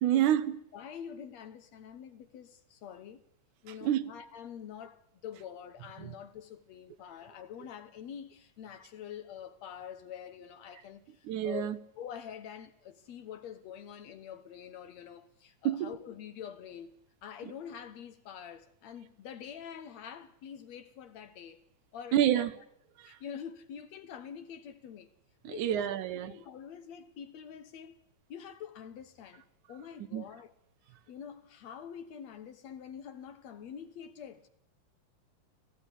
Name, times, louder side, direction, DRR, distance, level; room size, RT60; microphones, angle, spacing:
voice 1, 0.0-0.6 3.7-4.1 6.0-6.1 11.2-11.8 15.6-15.9 22.1-22.6 23.0-23.2 25.4-26.4 30.1-30.3, right 11 dB, 75° right, 2.3 m, -28 dB
voice 2, 0.7-3.2 3.6-17.0 17.2-21.6 21.9-22.5 23.0-25.1 25.5-28.0 28.3-30.5 31.1-34.5, left 8 dB, 65° left, 2.1 m, -46 dB
19.0 x 15.5 x 9.9 m
omnidirectional pair, 3.7 m